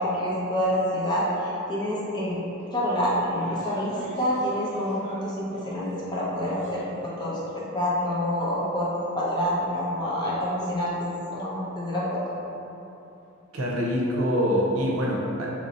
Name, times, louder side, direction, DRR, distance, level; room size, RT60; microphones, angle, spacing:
voice 1, 0.0-2.4 2.7-12.4, equal, 20° left, -7 dB, 0.6 m, -27 dB
sound 1, 2.2-2.3 2.6-6.0 6.3-7.3 7.5-7.6 8.4-8.5, equal, 35° right, 0.7 m, -46 dB
voice 2, 13.5-15.6, equal, 80° right, -2 dB, 0.6 m, -25 dB
3.0 x 2.6 x 4.1 m, 2.9 s
head